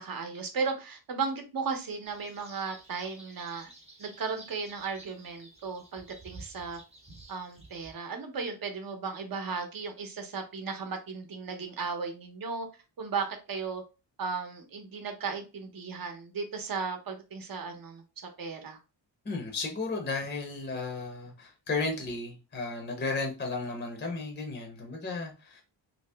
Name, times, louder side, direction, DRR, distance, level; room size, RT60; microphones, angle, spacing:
voice 1, 0.0-3.7 4.0-6.8 7.3-12.7 13.0-13.8 14.2-18.0 18.4-18.8, right 5 dB, 50° right, 5 dB, 0.8 m, -35 dB
sound 1, 2.0-7.9, right 2 dB, 15° right, 0.7 m, -52 dB
voice 2, 19.3-25.6, left 3 dB, 20° left, 1 dB, 0.6 m, -34 dB
2.8 x 2.7 x 3.3 m, 0.30 s
wide cardioid pair, 165°, 46 cm